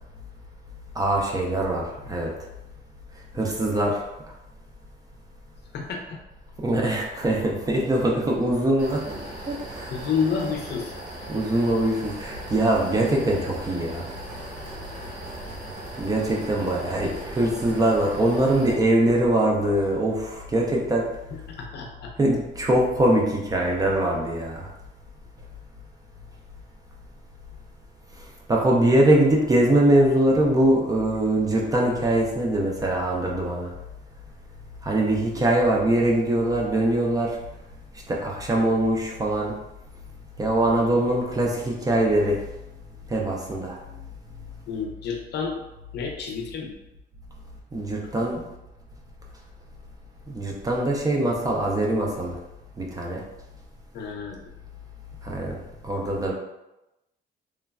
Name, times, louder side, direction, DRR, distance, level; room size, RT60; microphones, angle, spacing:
voice 1, 1.0-2.3 3.3-4.0 6.6-10.0 11.3-14.1 16.0-21.1 22.2-24.7 28.5-33.7 34.8-37.4 38.1-39.5 40.4-42.4 43.1-43.8 47.7-48.4 50.3-52.4 52.8-53.2 55.2-55.6 55.8-56.3, right 1 dB, 20° right, -2 dB, 0.3 m, -22 dB
voice 2, 5.7-6.2 9.9-10.9 21.6-22.1 44.7-45.6 45.9-46.7 53.9-54.4, left 6 dB, 65° left, 1 dB, 0.5 m, -29 dB
sound 1, 8.8-18.7, right 1 dB, 70° right, 0.9 m, -38 dB
3.1 x 2.1 x 2.3 m, 0.95 s
cardioid pair, 160°, 19 cm